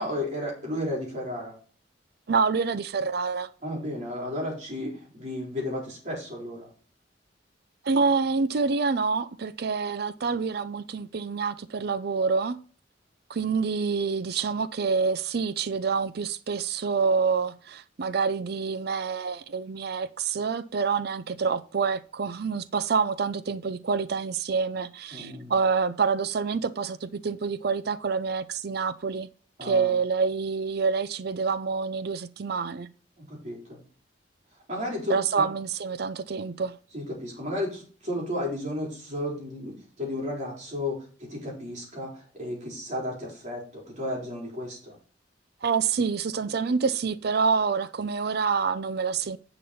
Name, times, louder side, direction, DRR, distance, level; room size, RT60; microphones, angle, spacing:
voice 1, 0.0-1.6 3.6-6.7 25.1-25.5 29.6-29.9 33.2-33.8 34.7-35.5 36.9-45.0, left 1 dB, 40° right, 4.1 m, -33 dB
voice 2, 2.3-3.5 7.8-12.6 13.3-29.3 29.6-32.9 35.1-36.8 45.6-49.4, right 5 dB, 60° right, 0.5 m, -27 dB
10.0 x 6.0 x 4.2 m
head